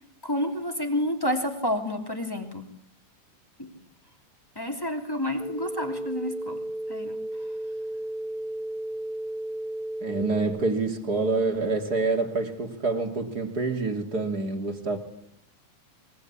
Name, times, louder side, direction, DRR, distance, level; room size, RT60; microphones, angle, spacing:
voice 1, 0.2-2.6 3.6-3.7 4.5-6.6 6.9-7.2, left 1 dB, 10° left, 2.8 m, -29 dB
sound 1, 5.4-10.4, right 1 dB, 65° left, 8.2 m, -34 dB
voice 2, 10.0-15.0, right 3 dB, 30° right, 3.0 m, -27 dB
26.0 x 22.0 x 8.6 m
omnidirectional pair, 3.4 m